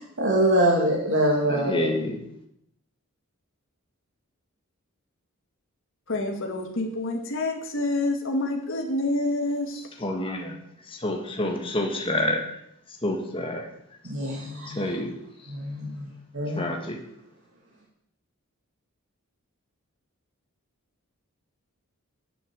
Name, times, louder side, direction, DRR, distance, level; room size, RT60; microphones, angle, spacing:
voice 1, 0.0-1.9 14.0-14.8 15.5-16.1 16.3-16.6, right 1 dB, 55° right, -3 dB, 2.2 m, -24 dB
voice 2, 1.5-2.2 10.0-12.4 12.9-13.7 14.7-15.1 16.5-17.0, left 1 dB, 25° left, 1 dB, 1.7 m, -28 dB
voice 3, 6.1-9.9, left 2 dB, 60° left, 3 dB, 1.9 m, -27 dB
10.5 x 7.1 x 7.6 m, 0.75 s
head